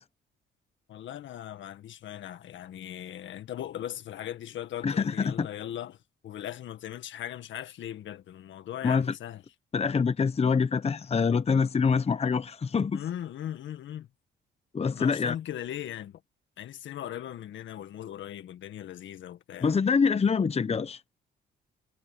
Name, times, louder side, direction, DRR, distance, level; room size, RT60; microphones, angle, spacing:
voice 1, 0.9-9.4 12.9-14.1 15.0-16.2 16.6-19.8, left 11 dB, 70° left, 1.7 m, -39 dB
voice 2, 4.8-5.5 8.8-9.1 9.7-13.0 14.7-15.3 19.6-21.0, left 5 dB, 30° left, 1.0 m, -25 dB
cardioid pair, 90°, 20 cm